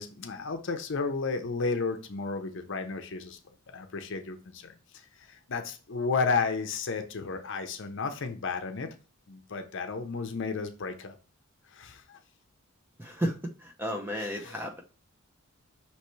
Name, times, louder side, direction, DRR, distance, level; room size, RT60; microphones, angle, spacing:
voice 1, 0.0-3.4 3.7-8.9 9.3-11.2 11.7-12.2 14.1-14.6, left 4 dB, 55° left, 7 dB, 0.6 m, -33 dB
voice 2, 13.0-14.8, equal, 10° right, 3 dB, 0.6 m, -33 dB
5.6 x 3.0 x 3.1 m, 0.36 s
head